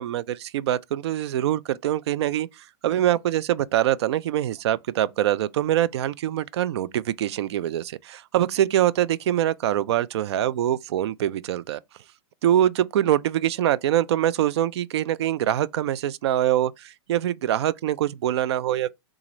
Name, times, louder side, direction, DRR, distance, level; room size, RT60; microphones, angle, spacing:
voice 1, 0.0-11.8 12.4-18.9, right 12 dB, 65° right, 0.4 m, -24 dB
3.9 x 2.4 x 3.0 m
hypercardioid pair, 160°, 15 cm